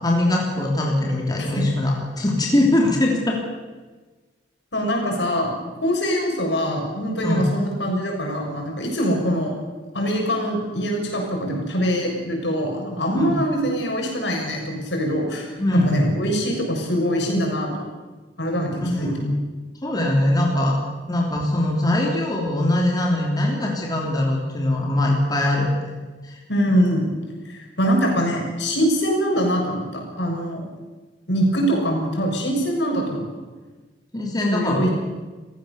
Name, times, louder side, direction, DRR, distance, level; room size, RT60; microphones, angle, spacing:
voice 1, 0.0-3.4 7.2-7.4 13.1-13.3 15.6-16.0 18.8-19.4 19.8-20.8 21.1-25.8 26.2-26.4 34.1-34.9, left 1 dB, 20° left, -1 dB, 3.2 m, -21 dB
voice 2, 4.7-5.5 5.8-9.5 9.9-15.5 15.8-17.9 18.4-19.1 26.5-27.1 27.4-30.6 31.3-33.3 34.5-34.9, equal, 70° left, 1 dB, 6.7 m, -23 dB
29.0 x 15.5 x 7.0 m, 1.3 s
head